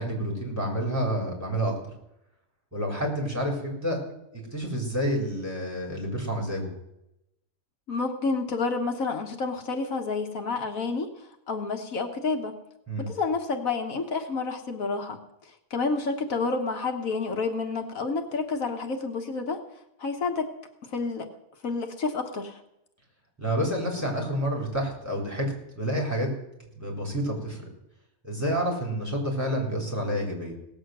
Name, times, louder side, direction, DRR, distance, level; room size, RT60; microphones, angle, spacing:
voice 1, 0.0-1.7 2.7-4.0 4.5-6.7 12.9-13.0 23.4-26.3 26.8-27.6 28.2-30.5, equal, 10° right, -1 dB, 3.9 m, -29 dB
voice 2, 7.9-11.1 11.5-12.6 13.0-15.2 15.7-19.6 20.0-20.5 20.9-21.3 21.6-22.6, left 4 dB, 75° left, 5 dB, 1.6 m, -29 dB
17.5 x 7.2 x 7.8 m, 0.85 s
omnidirectional pair, 1.4 m